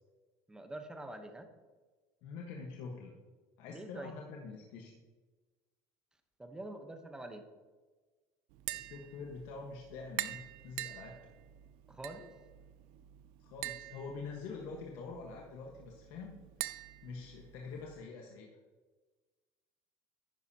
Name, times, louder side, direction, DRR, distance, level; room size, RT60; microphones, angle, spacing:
voice 1, 0.5-1.5 3.7-4.1 6.4-7.4 11.9-12.3, right 1 dB, 10° right, 6 dB, 0.9 m, -45 dB
voice 2, 2.2-3.1 3.6-5.0 8.7-11.2 13.4-16.4 17.0-18.5, left 4 dB, 65° left, 0 dB, 1.4 m, -45 dB
Tap, 8.5-18.0, right 16 dB, 65° right, 0.5 m, -46 dB
11.0 x 9.8 x 2.9 m, 1.3 s
cardioid pair, 145°, 9 cm